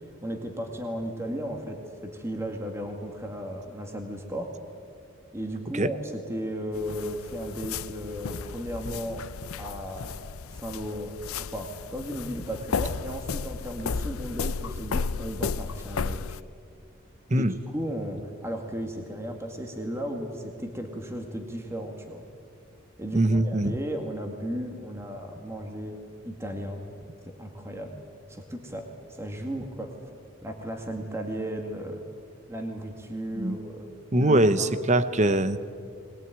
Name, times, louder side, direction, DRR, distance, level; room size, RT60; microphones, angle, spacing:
voice 1, 0.2-4.5 5.3-9.3 9.6-10.2 10.5-16.4 17.3-22.2 23.0-26.8 27.2-28.0 28.3-29.9 30.4-32.0 32.5-33.9 34.2-34.7, equal, 15° right, 3 dB, 2.1 m, -35 dB
sound 1, 6.7-16.4, left 5 dB, 90° left, 0.6 m, -34 dB
voice 2, 23.1-23.8 33.3-33.6 34.1-35.6, right 1 dB, 35° right, 12 dB, 0.9 m, -22 dB
21.5 x 21.5 x 9.2 m, 2.3 s
head